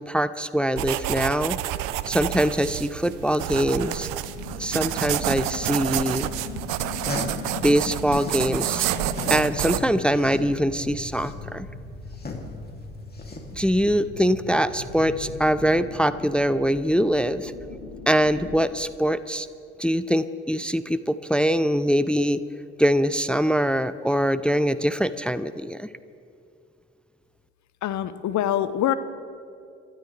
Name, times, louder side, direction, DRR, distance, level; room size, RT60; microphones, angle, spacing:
voice 1, 0.0-1.6 2.1-4.1 4.6-6.3 7.6-8.9 9.3-11.7 13.5-17.5 18.1-19.5 19.8-22.4 22.8-25.9, equal, 5° left, 15 dB, 0.5 m, -23 dB
sound 1, 0.8-9.8, right 14 dB, 70° right, 0.6 m, -29 dB
sound 2, 4.2-18.6, left 4 dB, 90° left, 1.5 m, -39 dB
sound 3, 6.8-8.5 8.8-13.8, left 3 dB, 30° left, 2.7 m, -37 dB
voice 2, 27.8-28.9, left 11 dB, 60° left, 13 dB, 0.8 m, -24 dB
27.0 x 12.5 x 3.3 m, 2.5 s
hypercardioid pair, 45°, 33 cm